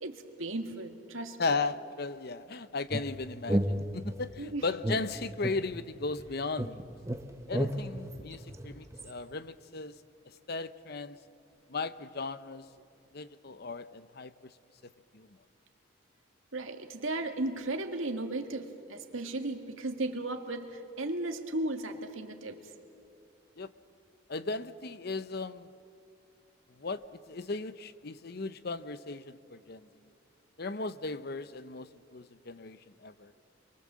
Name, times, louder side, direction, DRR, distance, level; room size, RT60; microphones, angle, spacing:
voice 1, 0.0-1.5 4.4-4.6 16.5-22.6, right 2 dB, 85° right, 2.0 m, -35 dB
voice 2, 1.4-6.9 7.5-10.0 10.5-11.2 11.7-12.7 13.1-14.3 14.8-15.3 23.6-23.7 24.3-25.7 26.8-29.9 30.6-33.3, left 3 dB, 50° left, 0.7 m, -36 dB
sound 1, 2.9-4.4 4.8-6.3 6.6-9.1, right 1 dB, 15° right, 0.8 m, -33 dB
28.5 x 23.0 x 7.5 m
head